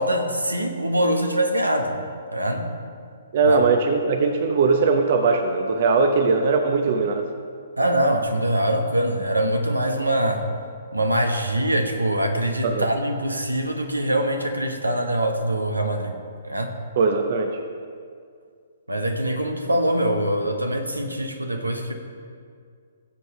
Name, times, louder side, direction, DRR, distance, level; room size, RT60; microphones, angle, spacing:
voice 1, 0.0-2.0 2.3-2.7 3.4-3.6 7.8-10.5 10.9-16.1 16.4-16.7 18.9-21.9, right 1 dB, 85° right, 5 dB, 1.3 m, -23 dB
voice 2, 3.3-7.3 12.6-12.9 17.0-17.6, right 4 dB, 45° right, 6 dB, 0.8 m, -20 dB
19.0 x 7.8 x 3.3 m, 2.2 s
figure-of-eight pair, 125°, 0 cm